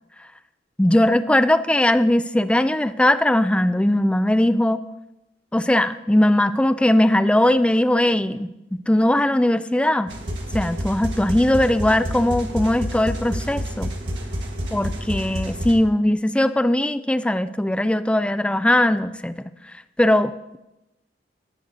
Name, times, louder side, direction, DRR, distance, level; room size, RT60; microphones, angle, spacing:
voice 1, 0.8-4.8 5.5-10.1 10.5-13.9 14.7-19.5 20.0-20.6, left 1 dB, 5° left, 13 dB, 0.3 m, -19 dB
sound 1, 10.1-15.7, equal, 70° right, 1.7 m, -29 dB
16.5 x 11.0 x 2.7 m, 0.96 s
head